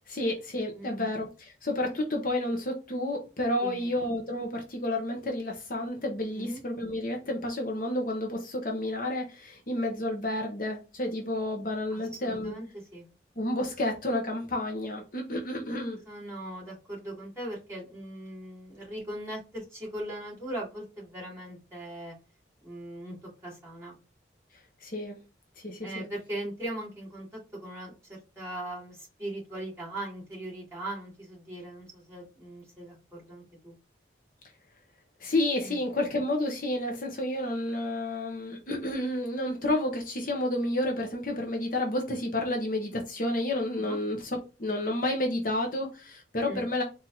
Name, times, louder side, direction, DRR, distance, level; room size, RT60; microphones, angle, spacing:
voice 1, 0.1-12.5 13.4-16.0 24.8-25.2 25.6-26.1 35.2-46.8, left 1 dB, 50° left, 0.9 m, -30 dB
voice 2, 0.7-1.1 3.6-3.9 6.3-6.6 11.9-13.1 16.1-22.1 22.6-24.0 25.8-33.8 35.6-35.8 43.7-44.0 46.5-46.7, right 1 dB, 15° right, 2.6 m, -40 dB
4.3 x 2.7 x 3.8 m
head